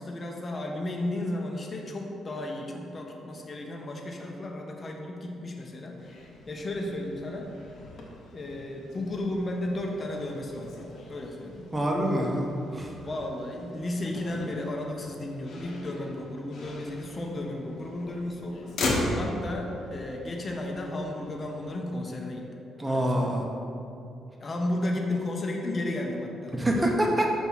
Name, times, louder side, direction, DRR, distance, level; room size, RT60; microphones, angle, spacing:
voice 1, 0.0-6.1 6.5-7.5 8.3-11.8 13.0-18.8 19.1-22.4 22.8-23.3 24.4-26.9, left 1 dB, 35° left, 1 dB, 0.7 m, -34 dB
Motor vehicle (road), 6.0-21.8, left 2 dB, 70° left, 1.0 m, -38 dB
voice 2, 11.7-12.5 12.7-12.9 22.8-23.5 26.5-27.3, right 1 dB, 15° right, 0 dB, 0.9 m, -25 dB
6.0 x 2.9 x 5.5 m, 2.7 s
cardioid pair, 90°, 0 cm